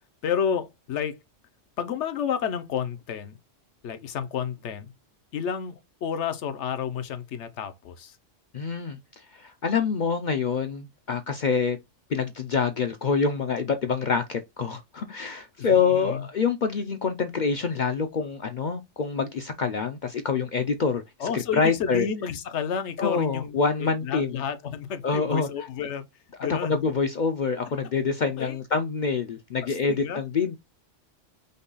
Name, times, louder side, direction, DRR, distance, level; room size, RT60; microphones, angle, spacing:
voice 1, 0.2-1.2 1.8-3.4 3.8-4.9 5.3-8.2 15.6-16.3 21.2-26.1 26.4-26.8 28.2-28.6 29.6-30.2, left 7 dB, 70° left, 1.0 m, -31 dB
voice 2, 8.5-11.8 12.1-22.1 23.0-24.4 25.0-25.5 26.4-30.6, left 5 dB, 55° left, 0.5 m, -26 dB
5.3 x 2.3 x 3.9 m
omnidirectional pair, 1.2 m